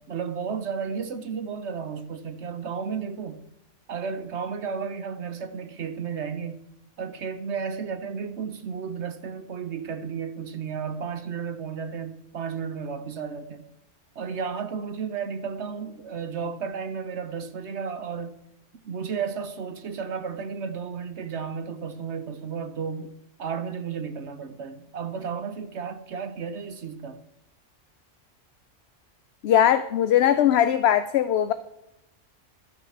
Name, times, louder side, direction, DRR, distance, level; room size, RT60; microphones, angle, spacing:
voice 1, 0.0-3.5 3.9-6.6 7.0-13.6 14.2-18.3 18.8-23.1 23.4-27.2, right 6 dB, 65° right, 1.2 m, -33 dB
voice 2, 29.4-31.5, left 10 dB, 65° left, 0.8 m, -20 dB
12.5 x 6.6 x 7.2 m
omnidirectional pair, 1.3 m